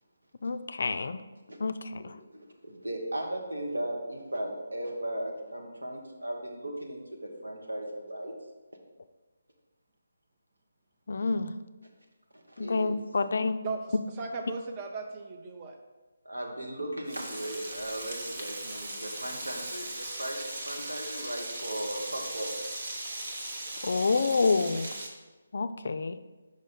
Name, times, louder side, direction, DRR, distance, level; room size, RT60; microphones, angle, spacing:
voice 1, 0.4-1.2 1.6-2.0 11.1-11.5 12.6-13.6 23.8-24.9 25.5-26.2, left 4 dB, 60° left, 11 dB, 0.3 m, -28 dB
voice 2, 2.3-8.3 12.3-12.9 16.2-20.4 20.6-22.5, right 1 dB, 85° right, 1 dB, 1.2 m, -37 dB
voice 3, 13.6-15.8 23.9-24.4, right 4 dB, 25° right, 3 dB, 0.6 m, -38 dB
Frying (food), 17.1-25.1, right 1 dB, 60° right, 1.0 m, -38 dB
5.2 x 5.2 x 3.9 m, 1.2 s
figure-of-eight pair, 150°, 0 cm